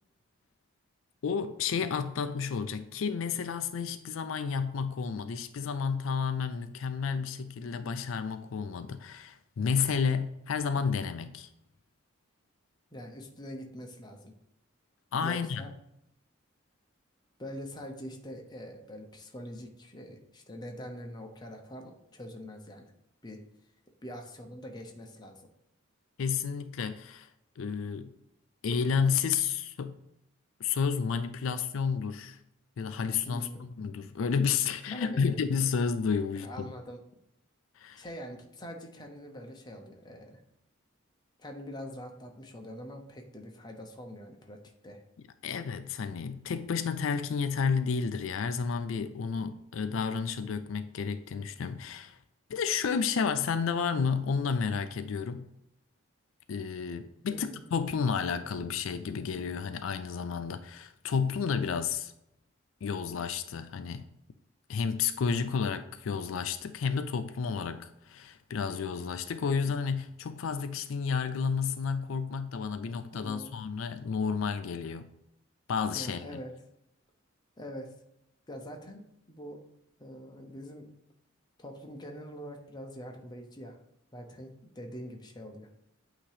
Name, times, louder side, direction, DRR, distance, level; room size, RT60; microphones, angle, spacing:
voice 1, 1.2-11.5 15.1-15.6 26.2-27.3 27.6-28.1 28.6-30.0 30.6-32.4 32.8-36.7 37.8-38.1 45.4-52.2 52.5-55.5 56.5-62.1 62.8-64.1 64.7-75.1 75.7-76.3, left 6 dB, 75° left, 0.4 m, -31 dB
voice 2, 12.9-14.3 15.2-15.7 17.4-22.8 23.2-23.4 24.0-25.5 33.3-33.6 34.0-34.2 34.9-35.4 36.4-37.0 38.0-40.4 41.4-44.6 44.8-45.0 57.3-57.6 73.1-73.5 75.9-76.5 77.6-77.9 78.5-79.6 80.0-80.9 81.6-83.8 84.1-85.7, equal, 20° left, 0.8 m, -44 dB
8.5 x 2.9 x 4.9 m
head